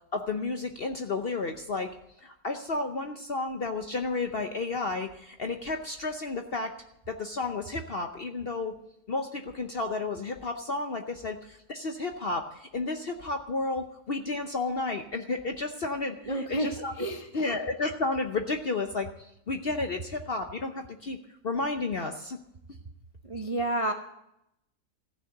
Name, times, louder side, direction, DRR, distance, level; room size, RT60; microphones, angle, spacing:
voice 1, 0.1-1.9 2.2-6.7 7.1-8.8 9.1-17.1 17.3-19.1 19.5-21.2 21.4-22.4, left 3 dB, 50° left, 5 dB, 0.7 m, -32 dB
voice 2, 16.3-17.5 23.2-23.9, right 1 dB, 35° right, 4 dB, 0.5 m, -31 dB
14.5 x 6.7 x 7.8 m, 0.80 s
omnidirectional pair, 1.8 m